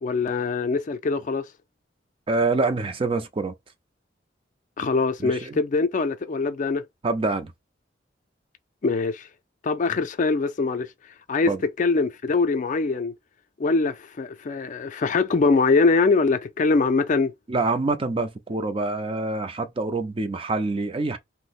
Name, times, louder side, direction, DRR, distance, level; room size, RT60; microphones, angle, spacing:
voice 1, 0.0-1.4 4.8-6.8 8.8-9.3 9.6-10.9 11.3-11.5 11.8-13.1 13.6-17.3, left 4 dB, 45° left, 0.4 m, -23 dB
voice 2, 2.3-3.5 5.2-5.6 7.0-7.5 11.5-11.6 17.5-21.2, right 3 dB, 30° right, 0.4 m, -26 dB
2.7 x 2.0 x 4.0 m
head